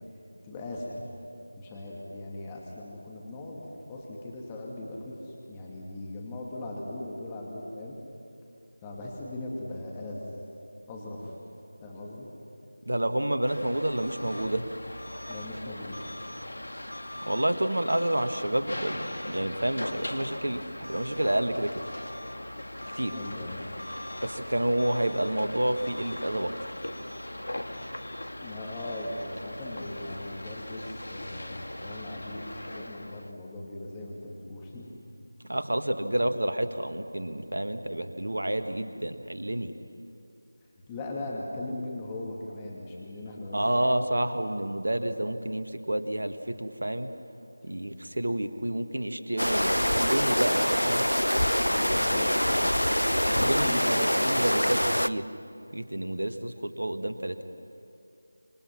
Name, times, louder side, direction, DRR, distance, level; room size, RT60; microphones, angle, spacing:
voice 1, 0.4-1.0 1.5-8.0 8.8-10.3 10.9-11.3 11.8-12.3 15.3-16.0 23.1-23.7 28.4-35.0 40.9-43.6 51.7-52.7 53.4-54.5, left 1 dB, 15° left, -3 dB, 2.4 m, -39 dB
voice 2, 12.8-14.6 17.2-21.7 22.9-23.2 24.2-26.5 35.5-39.7 43.5-47.1 47.6-51.1 53.3-55.2 55.7-57.4, right 1 dB, 70° right, 8 dB, 1.6 m, -29 dB
sound 1, 13.5-33.3, left 1 dB, 70° left, 1.6 m, -39 dB
sound 2, 49.4-55.1, equal, 90° left, 0.7 m, -25 dB
27.0 x 25.0 x 6.0 m, 2.6 s
figure-of-eight pair, 165°, 0 cm